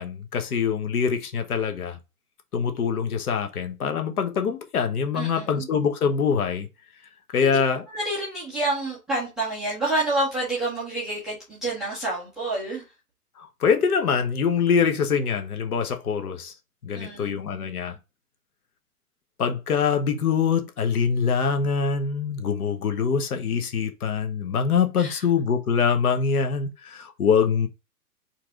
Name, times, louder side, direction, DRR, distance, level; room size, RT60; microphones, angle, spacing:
voice 1, 0.0-2.0 2.5-6.7 7.3-7.8 13.4-16.5 16.8-18.0 19.4-27.7, left 6 dB, 70° left, 1.1 m, -24 dB
voice 2, 5.1-5.7 7.4-7.5 7.9-12.8 16.9-17.3 25.0-25.2, right 2 dB, ahead, 0.4 m, -28 dB
4.5 x 2.6 x 4.3 m
hypercardioid pair, 130°, 46 cm